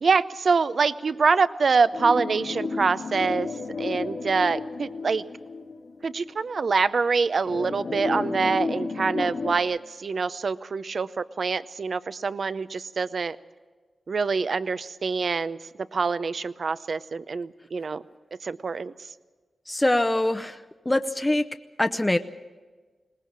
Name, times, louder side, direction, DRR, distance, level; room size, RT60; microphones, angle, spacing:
voice 1, 0.0-3.5 3.8-5.2 6.0-13.4 14.1-15.6 15.9-18.0 18.4-18.9, right 4 dB, 60° right, 14 dB, 0.6 m, -25 dB
sound 1, 1.9-6.3 6.7-6.8 7.4-9.6, left 4 dB, 75° left, 2.1 m, -32 dB
voice 2, 19.7-20.6 20.9-21.4 21.8-22.2, left 1 dB, 15° left, 8 dB, 0.7 m, -23 dB
21.5 x 19.5 x 7.4 m, 1.3 s
cardioid pair, 65°, 0 cm